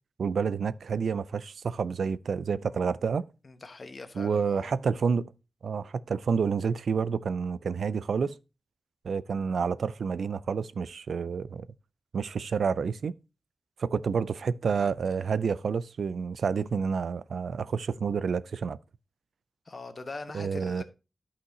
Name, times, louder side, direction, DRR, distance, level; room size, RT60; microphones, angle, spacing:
voice 1, 0.2-3.3 4.2-5.3 5.6-8.4 9.0-11.7 12.1-13.1 13.8-18.8 20.3-20.8, right 6 dB, 90° right, 0.4 m, -29 dB
voice 2, 3.4-4.8 19.7-20.8, left 3 dB, 45° left, 1.1 m, -42 dB
12.5 x 5.7 x 2.8 m
wide cardioid pair, 120°, 0 cm